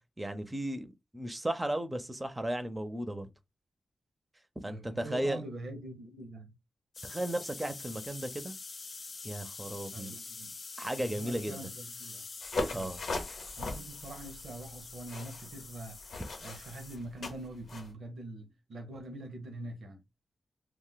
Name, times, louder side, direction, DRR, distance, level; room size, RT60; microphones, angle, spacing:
voice 1, 0.2-3.3 4.6-5.4 7.0-8.5 9.2-10.1 10.8-11.6 12.7-13.0, right 1 dB, 20° right, 0.6 m, -35 dB
voice 2, 4.6-6.5 9.9-10.5 11.0-12.2 12.7-12.9 13.6-20.0, right 1 dB, 80° right, 0.7 m, -44 dB
sound 1, 6.9-17.0, left 4 dB, 55° left, 0.4 m, -46 dB
sound 2, 12.4-17.9, left 2 dB, 75° left, 0.8 m, -39 dB
2.4 x 2.2 x 3.9 m
cardioid pair, 55°, 0 cm